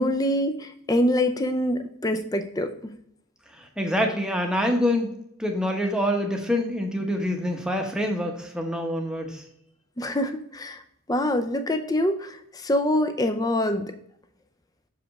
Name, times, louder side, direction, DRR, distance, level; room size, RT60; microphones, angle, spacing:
voice 1, 0.0-2.9 10.0-10.8 11.1-13.9, left 1 dB, 15° left, 8 dB, 0.5 m, -25 dB
voice 2, 3.5-5.1 5.4-9.4, left 1 dB, 5° right, 2 dB, 0.8 m, -26 dB
6.5 x 5.0 x 3.5 m, 0.74 s
head